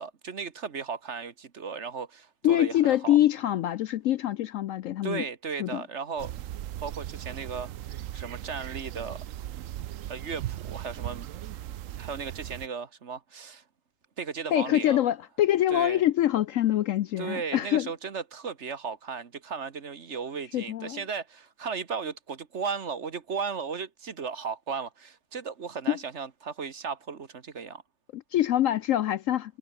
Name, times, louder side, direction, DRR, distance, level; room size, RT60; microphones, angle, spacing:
voice 1, 0.0-3.2 5.0-6.3 6.8-7.7 8.1-9.2 10.1-11.3 12.0-13.6 14.2-15.0 15.7-16.0 17.2-27.8, right 5 dB, 50° right, 1.5 m, -35 dB
voice 2, 2.4-5.2 5.6-5.8 14.5-17.9 20.5-21.0 25.9-26.0 28.1-29.6, left 12 dB, 70° left, 0.8 m, -25 dB
sound 1, 6.2-12.7, right 12 dB, 65° right, 0.9 m, -38 dB
omnidirectional pair, 1.7 m